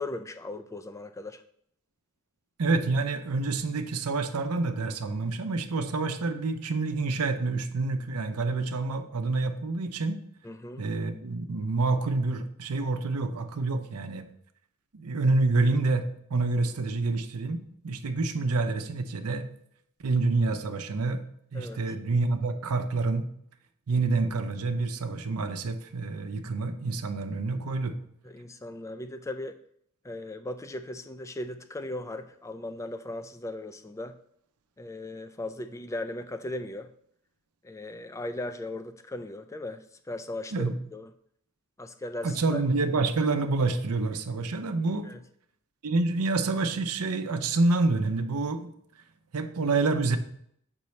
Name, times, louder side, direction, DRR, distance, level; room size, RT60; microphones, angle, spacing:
voice 1, 0.0-1.4 10.4-10.8 21.5-21.9 28.2-29.6 30.0-34.2 34.8-36.9 37.6-41.1 41.8-42.6 45.0-45.2, left 2 dB, 15° left, 10 dB, 0.3 m, -38 dB
voice 2, 2.6-10.2 10.8-14.3 14.9-19.5 20.0-21.2 21.5-23.2 23.9-28.0 40.5-40.7 42.2-45.1 45.8-48.7 49.3-50.2, right 3 dB, 85° right, 7 dB, 0.6 m, -27 dB
6.9 x 5.3 x 3.2 m, 0.68 s
head